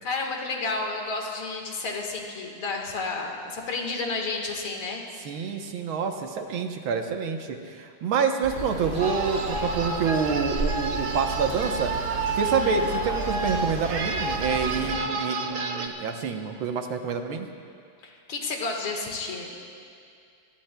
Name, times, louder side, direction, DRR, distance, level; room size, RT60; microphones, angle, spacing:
voice 1, 0.0-5.0 12.4-13.0 18.0-19.5, left 3 dB, 75° left, 1 dB, 2.4 m, -31 dB
voice 2, 5.3-11.9 12.3-17.5, right 6 dB, 75° right, 5 dB, 1.8 m, -27 dB
sound 1, 8.4-15.0, right 2 dB, 25° right, 3.5 m, -34 dB
sound 2, 9.0-15.9, right 3 dB, 55° right, 0.9 m, -30 dB
26.5 x 18.0 x 2.2 m, 2.4 s
omnidirectional pair, 2.3 m